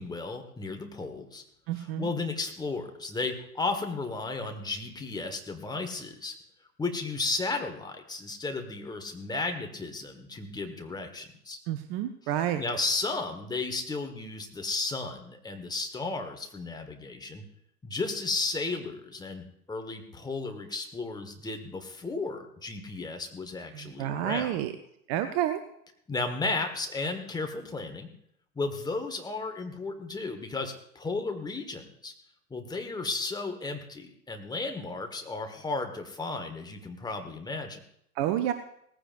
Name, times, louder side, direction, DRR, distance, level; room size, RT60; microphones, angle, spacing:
voice 1, 0.0-1.4 1.8-6.4 6.8-11.6 12.6-17.4 17.8-24.6 26.1-28.1 28.5-32.1 32.5-37.8, left 3 dB, 10° left, 4 dB, 1.4 m, -34 dB
voice 2, 1.7-2.1 11.7-12.6 23.7-24.7 25.1-25.6 38.2-38.5, right 12 dB, 35° right, 9 dB, 0.8 m, -29 dB
18.0 x 15.0 x 2.6 m, 0.72 s
figure-of-eight pair, 100°, 47 cm